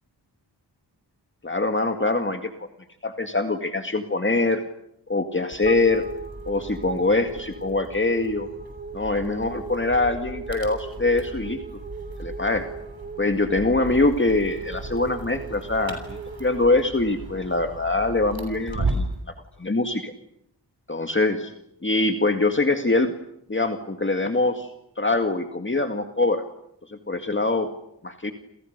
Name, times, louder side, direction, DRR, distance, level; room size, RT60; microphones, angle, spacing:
voice 1, 1.4-2.7 3.0-4.6 5.1-6.0 6.5-8.5 8.9-11.8 12.2-12.7 13.2-19.1 19.6-20.1 20.9-21.5 21.8-23.1 23.5-24.7 25.0-26.4 26.9-27.7 28.0-28.3, left 2 dB, 30° left, 6 dB, 2.1 m, -23 dB
sound 1, 5.5-19.2, right 2 dB, 60° right, 7.1 m, -36 dB
sound 2, 5.7-18.2, right 4 dB, 25° right, 2.4 m, -39 dB
29.5 x 29.5 x 6.7 m, 0.78 s
wide cardioid pair, 105°, 42 cm